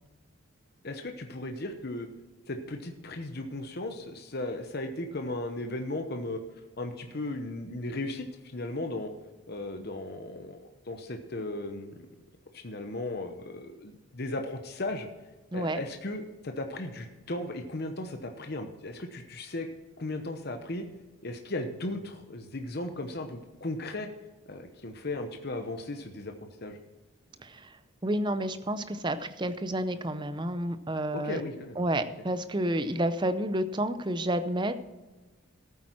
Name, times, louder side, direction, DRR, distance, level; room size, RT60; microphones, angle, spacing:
voice 1, 0.8-2.1 2.5-6.4 6.8-9.1 9.5-12.0 12.5-15.1 15.5-19.7 20.0-20.8 21.2-24.1 24.5-26.8 31.1-31.8, left 2 dB, 50° left, 5 dB, 0.9 m, -36 dB
voice 2, 28.0-31.4 31.8-34.8, right 1 dB, 20° right, 11 dB, 0.6 m, -30 dB
14.0 x 8.6 x 4.5 m, 1.2 s
head